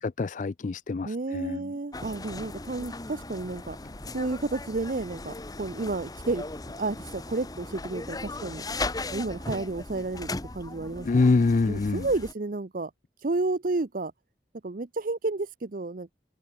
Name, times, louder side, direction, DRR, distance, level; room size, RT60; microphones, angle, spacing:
voice 1, 0.0-1.6 11.0-12.1, left 3 dB, 45° left, 0.4 m, -25 dB
voice 2, 1.0-3.8 4.1-6.5 6.8-8.6 9.1-11.1 11.6-12.9 13.2-14.1 14.6-16.1, right 3 dB, 50° right, 0.7 m, -31 dB
sound 1, 1.9-12.3, left 2 dB, 20° left, 1.0 m, -37 dB
head